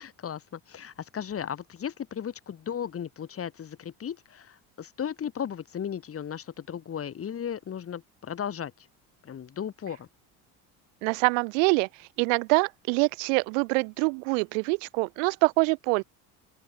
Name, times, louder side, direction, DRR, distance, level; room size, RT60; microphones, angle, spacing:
voice 1, 0.0-8.9 9.2-10.1, left 8 dB, 35° left, 3.7 m, -36 dB
voice 2, 11.0-11.9 12.2-16.0, right 35 dB, 90° right, 1.1 m, -25 dB
open air
supercardioid pair, 110°, 37 cm